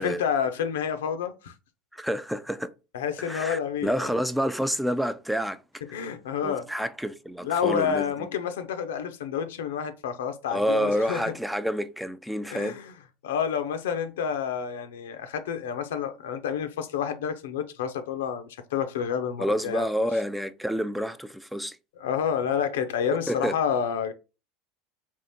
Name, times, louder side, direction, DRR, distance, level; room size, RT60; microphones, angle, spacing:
voice 1, 0.0-1.5 2.9-4.1 5.9-6.7 7.4-11.3 12.5-12.9 13.2-19.9 22.0-24.1, left 7 dB, 85° left, 0.6 m, -29 dB
voice 2, 1.9-2.7 3.2-5.6 5.9-6.0 6.4-8.1 10.5-12.8 19.4-21.8 23.3-23.6, equal, ahead, 0.3 m, -28 dB
3.6 x 2.5 x 4.1 m
hypercardioid pair, 95°, 0 cm